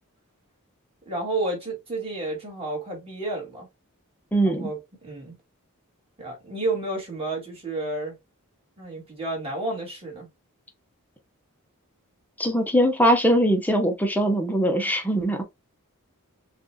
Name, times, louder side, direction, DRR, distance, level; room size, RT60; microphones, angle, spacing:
voice 1, 1.1-3.7 4.4-5.4 6.2-8.1 8.8-10.3, right 2 dB, 25° right, 2.4 m, -31 dB
voice 2, 4.3-4.7 12.4-15.4, equal, 10° left, 0.9 m, -21 dB
6.7 x 2.6 x 2.2 m
head